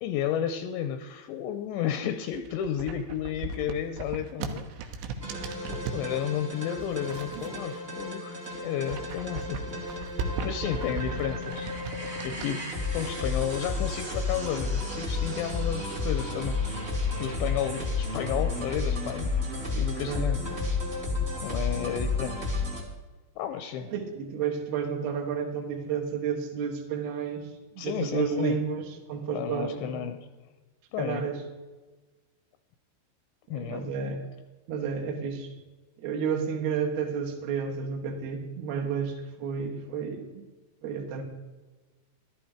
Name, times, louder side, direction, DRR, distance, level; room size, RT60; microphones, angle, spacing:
voice 1, 0.0-4.7 5.5-9.7 10.4-11.7 12.2-12.6 12.9-16.9 17.2-19.3 19.7-20.4 21.4-22.5 23.4-23.9 27.8-28.6 29.3-30.2 30.9-31.3 33.5-33.8, left 9 dB, 80° left, 9 dB, 2.7 m, -32 dB
sound 1, 2.2-6.1 6.8-8.1 8.4-12.5, right 4 dB, 80° right, 3.4 m, -37 dB
sound 2, 5.2-22.8, left 3 dB, 25° right, 1.5 m, -32 dB
voice 2, 23.8-30.0 31.0-31.4 33.5-34.2 34.7-35.5 36.0-40.4 40.8-41.2, right 6 dB, 65° right, 2 dB, 3.0 m, -31 dB
14.5 x 12.0 x 5.0 m, 1.2 s
omnidirectional pair, 5.6 m